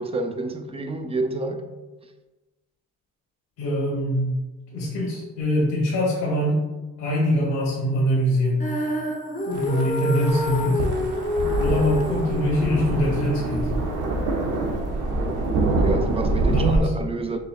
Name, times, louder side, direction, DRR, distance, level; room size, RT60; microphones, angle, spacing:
voice 1, 0.0-1.7 15.6-17.4, right 3 dB, 20° right, 0.3 m, -28 dB
voice 2, 3.6-4.3 4.7-6.6 7.0-8.6 9.5-10.8 11.6-13.7 16.4-16.9, equal, 85° left, 1.1 m, -23 dB
Female singing, 8.6-14.8, left 2 dB, 25° left, 0.6 m, -29 dB
sound 1, 9.5-16.8, right 2 dB, 80° right, 0.7 m, -25 dB
4.8 x 2.7 x 2.2 m
cardioid pair, 90°, 30 cm